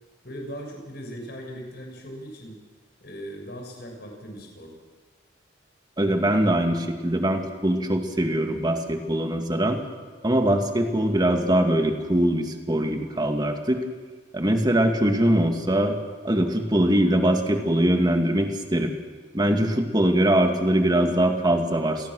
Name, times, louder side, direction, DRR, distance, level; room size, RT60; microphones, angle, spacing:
voice 1, 0.2-2.5 3.0-4.7, equal, 65° left, 1 dB, 6.5 m, -39 dB
voice 2, 6.0-9.8 10.2-13.8 14.3-16.0 16.2-18.9 19.3-22.1, right 1 dB, 25° right, 4 dB, 2.3 m, -22 dB
28.0 x 18.5 x 6.4 m, 1.4 s
head